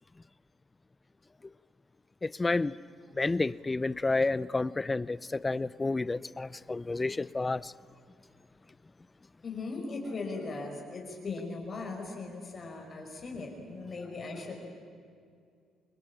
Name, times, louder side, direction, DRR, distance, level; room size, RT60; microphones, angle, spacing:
voice 1, 2.2-2.8 3.1-7.7, left 3 dB, 25° left, 0.7 m, -30 dB
voice 2, 9.4-14.7, left 3 dB, 45° left, 5.8 m, -38 dB
28.0 x 21.0 x 8.6 m
supercardioid pair, 70°, 0 cm